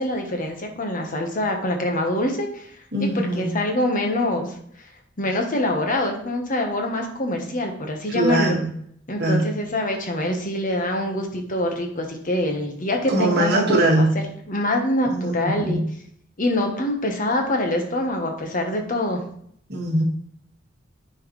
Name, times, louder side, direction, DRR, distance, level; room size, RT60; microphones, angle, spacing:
voice 1, 0.0-2.7 3.0-4.5 5.2-8.6 9.1-14.1 14.5-15.8 16.4-19.2, left 1 dB, 45° left, 3 dB, 1.2 m, -25 dB
voice 2, 2.9-3.5 8.1-8.7 9.2-9.5 13.1-14.1 15.1-15.8 19.7-20.0, right 1 dB, 55° right, -2 dB, 1.8 m, -21 dB
9.8 x 4.5 x 3.2 m, 0.66 s
head